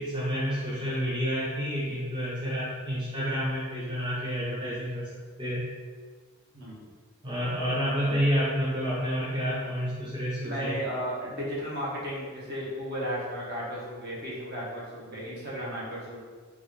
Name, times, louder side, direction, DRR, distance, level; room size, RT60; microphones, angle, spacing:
voice 1, 0.0-5.1 5.4-5.7 7.2-10.7, equal, 20° right, -8 dB, 0.6 m, -29 dB
voice 2, 6.5-6.9 10.4-16.2, equal, 50° right, -6 dB, 1.0 m, -34 dB
3.9 x 2.3 x 3.2 m, 1.5 s
head